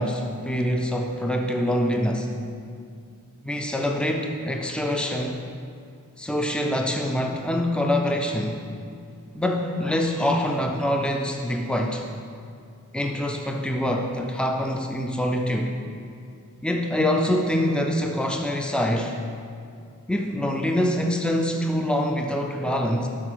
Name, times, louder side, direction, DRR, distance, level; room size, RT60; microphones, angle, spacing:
voice 1, 0.0-2.3 3.4-5.4 6.2-8.7 9.3-12.0 12.9-15.7 16.6-19.2 20.1-23.1, left 1 dB, 5° left, 2 dB, 0.4 m, -25 dB
6.1 x 5.4 x 6.0 m, 2.3 s
head